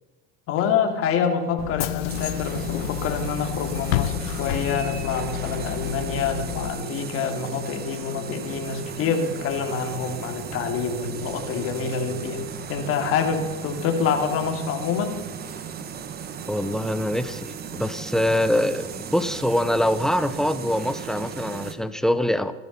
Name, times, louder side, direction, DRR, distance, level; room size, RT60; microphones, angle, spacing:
voice 1, 0.5-12.4 12.7-15.2, left 6 dB, 45° left, 4 dB, 2.9 m, -26 dB
Bus / Engine, 1.6-6.7, left 15 dB, 75° left, 0.9 m, -29 dB
sound 1, 2.1-21.7, right 7 dB, 30° right, 1.4 m, -36 dB
voice 2, 16.5-22.5, left 1 dB, ahead, 12 dB, 0.8 m, -24 dB
15.5 x 12.5 x 5.6 m, 1.2 s
supercardioid pair, 115°, 31 cm